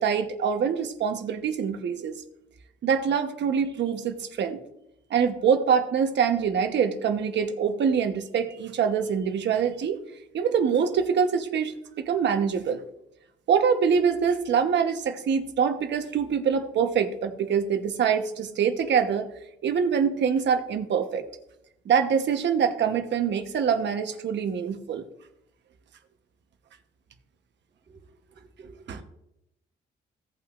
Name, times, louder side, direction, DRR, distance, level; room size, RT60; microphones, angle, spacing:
voice 1, 0.0-2.2 2.8-4.6 5.1-10.0 10.3-12.8 13.5-19.3 19.6-21.3 21.9-25.0 28.9-29.0, right 7 dB, 65° right, 7 dB, 1.0 m, -24 dB
voice 2, 27.9-29.0, right 4 dB, 35° right, -1 dB, 1.8 m, -50 dB
17.0 x 5.7 x 2.5 m, 0.83 s
cardioid pair, 90°, 20 cm